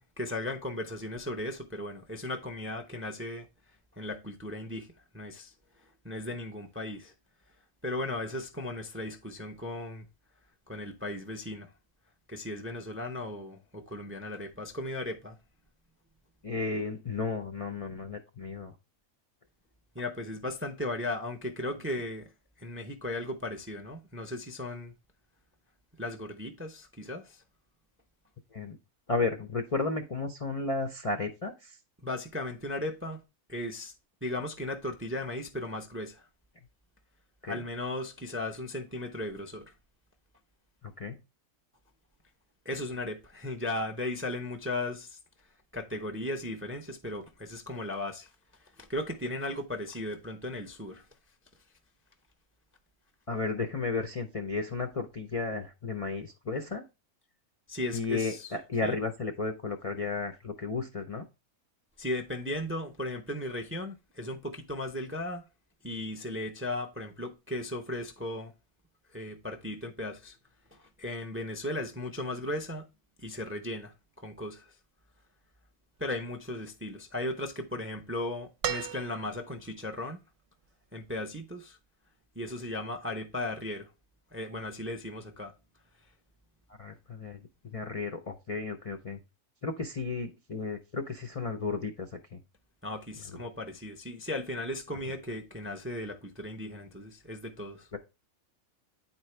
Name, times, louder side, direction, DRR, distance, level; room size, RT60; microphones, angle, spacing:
voice 1, 0.0-3.5 4.0-4.9 5.1-5.5 5.8-7.1 7.8-10.0 10.7-11.7 12.3-15.4 19.9-22.3 22.6-24.9 26.0-27.4 32.0-33.2 33.5-33.9 34.2-36.3 37.4-39.7 42.6-45.2 45.7-48.3 48.8-51.0 57.7-58.5 58.8-59.0 62.0-65.4 65.8-68.5 69.1-70.4 70.7-72.8 73.2-74.7 76.0-80.2 80.9-81.8 82.4-83.9 84.3-85.5 92.8-97.9, left 1 dB, 15° right, 0.4 m, -36 dB
voice 2, 16.4-18.7 28.5-28.8 29.1-31.8 37.4-37.6 40.8-41.2 53.3-56.8 57.9-61.3 86.8-89.2 89.6-92.4 97.9-98.0, left 3 dB, 50° left, 0.4 m, -33 dB
sound 1, 78.6-79.6 81.2-81.3, right 9 dB, 65° right, 0.9 m, -35 dB
9.4 x 4.4 x 3.2 m
omnidirectional pair, 1.5 m